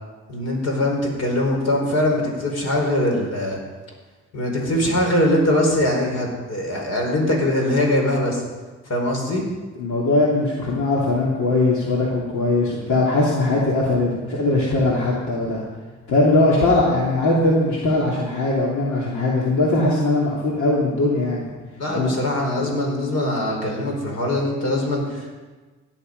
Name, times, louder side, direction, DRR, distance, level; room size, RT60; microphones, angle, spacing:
voice 1, 0.3-3.6 4.3-8.4 8.8-9.4 21.8-25.3, left 1 dB, 55° left, 0 dB, 4.9 m, -22 dB
voice 2, 9.8-15.6 16.1-21.5 21.9-22.1, left 2 dB, 75° left, -4 dB, 2.9 m, -20 dB
16.5 x 10.5 x 5.3 m, 1.3 s
cardioid pair, 90°, 30 cm